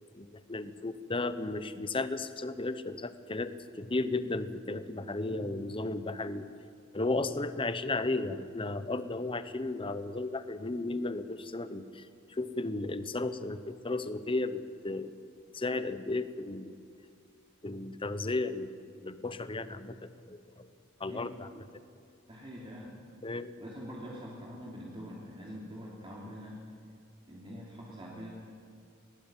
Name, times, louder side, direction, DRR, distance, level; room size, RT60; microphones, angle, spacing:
voice 1, 0.1-6.5 6.9-15.1 15.5-16.8 17.6-20.0 20.3-20.7 21.0-21.6 23.2-23.5, left 2 dB, 25° left, 12 dB, 0.9 m, -34 dB
voice 2, 22.3-23.0 23.6-26.6 27.3-28.3, equal, 25° right, -4 dB, 3.2 m, -44 dB
20.0 x 18.5 x 9.0 m, 2.3 s
head